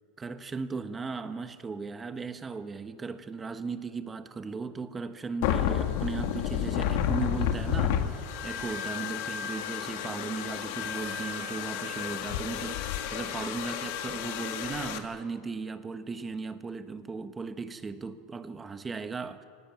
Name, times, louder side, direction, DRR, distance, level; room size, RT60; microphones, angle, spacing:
voice 1, 0.2-19.4, right 4 dB, 20° right, 1.4 m, -37 dB
sound 1, 5.4-15.0, left 9 dB, 70° left, 2.0 m, -31 dB
23.5 x 18.5 x 9.0 m
hypercardioid pair, 105°, 0 cm